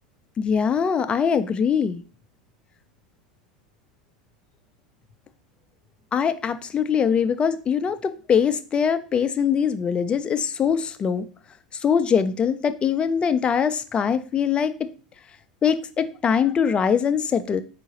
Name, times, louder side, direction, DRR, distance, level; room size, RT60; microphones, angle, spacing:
voice 1, 0.4-2.0 6.1-11.3 11.7-14.7 15.6-17.6, left 7 dB, 25° left, 12 dB, 0.4 m, -22 dB
4.6 x 2.5 x 4.1 m, 0.38 s
figure-of-eight pair, 80°, 4 cm